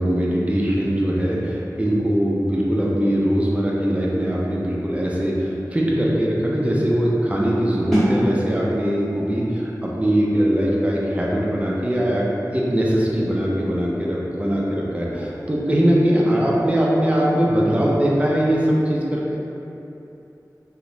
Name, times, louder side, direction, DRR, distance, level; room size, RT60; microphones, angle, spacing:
voice 1, 0.0-12.3 12.5-19.4, equal, 20° right, -4 dB, 0.5 m, -21 dB
sound 1, 7.9-13.6, equal, 5° left, 1.0 m, -30 dB
2.8 x 2.1 x 2.6 m, 2.9 s
wide cardioid pair, 45°, 7 cm